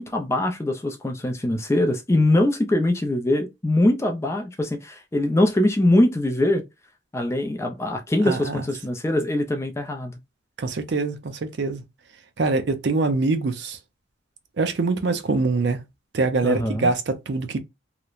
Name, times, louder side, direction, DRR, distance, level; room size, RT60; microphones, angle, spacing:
voice 1, 0.0-6.6 7.1-10.2 16.4-16.9, left 1 dB, 15° left, 0.3 m, -22 dB
voice 2, 8.2-8.6 10.6-11.8 12.4-13.8 14.6-15.8 16.1-17.6, right 3 dB, 60° right, 0.5 m, -24 dB
3.0 x 2.0 x 2.4 m
head